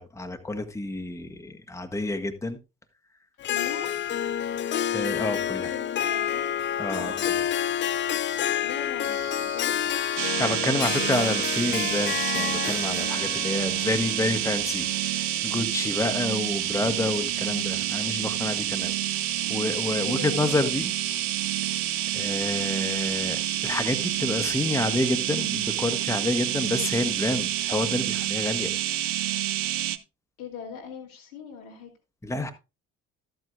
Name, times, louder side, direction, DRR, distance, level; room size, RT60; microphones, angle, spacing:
voice 1, 0.0-2.6 4.9-5.7 6.8-7.4 10.4-19.2 19.5-20.9 22.1-28.7 32.2-32.5, left 2 dB, 5° left, 1.2 m, -29 dB
voice 2, 3.4-3.9 5.6-6.5 6.9-7.4 8.6-9.9 10.8-11.2 20.0-20.6 30.4-31.9, left 7 dB, 80° left, 2.4 m, -40 dB
Harp, 3.4-15.2, left 10 dB, 30° left, 0.4 m, -29 dB
sound 1, 9.0-24.8, right 7 dB, 55° right, 2.8 m, -43 dB
sound 2, 10.2-30.0, right 13 dB, 75° right, 0.8 m, -28 dB
13.0 x 8.0 x 2.4 m
figure-of-eight pair, 50°, 42 cm